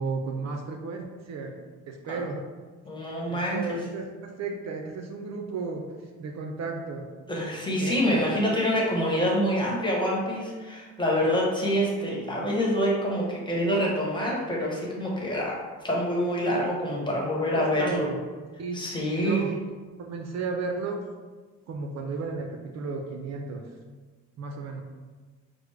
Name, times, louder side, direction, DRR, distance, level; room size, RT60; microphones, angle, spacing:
voice 1, 0.0-1.6 1.9-2.5 3.3-5.9 6.2-7.1 7.8-8.3 17.5-18.2 18.6-18.8 19.2-19.6 20.0-21.1 21.7-23.7 24.4-24.8, right 4 dB, 60° right, 3 dB, 0.5 m, -33 dB
voice 2, 2.9-3.8 7.3-18.1 18.7-19.5, equal, 15° left, -4 dB, 1.2 m, -26 dB
6.0 x 2.0 x 3.3 m, 1.4 s
cardioid pair, 90°, 30 cm